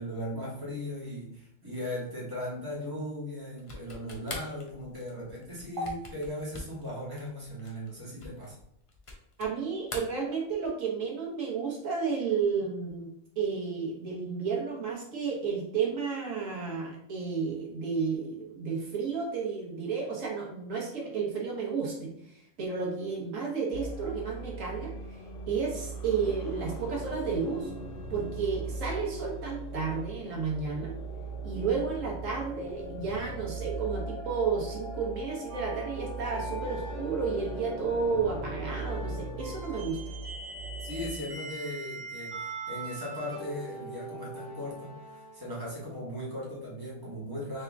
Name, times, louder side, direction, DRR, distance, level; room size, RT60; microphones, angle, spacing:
voice 1, 0.0-8.5 40.8-44.9 45.3-47.6, left 1 dB, 20° right, -6 dB, 1.6 m, -38 dB
sound 1, 3.6-9.6 9.8-10.9, left 2 dB, 30° left, 0.8 m, -44 dB
voice 2, 9.4-13.1 13.4-24.9 25.5-27.7 28.1-30.9 31.4-40.0, right 5 dB, 90° right, -3 dB, 1.5 m, -32 dB
sound 2, 23.7-41.1, right 2 dB, 75° left, 1.0 m, -39 dB
sound 3, 35.5-45.7, right 2 dB, 70° right, 1.4 m, -43 dB
3.5 x 3.5 x 3.5 m, 0.74 s
omnidirectional pair, 1.3 m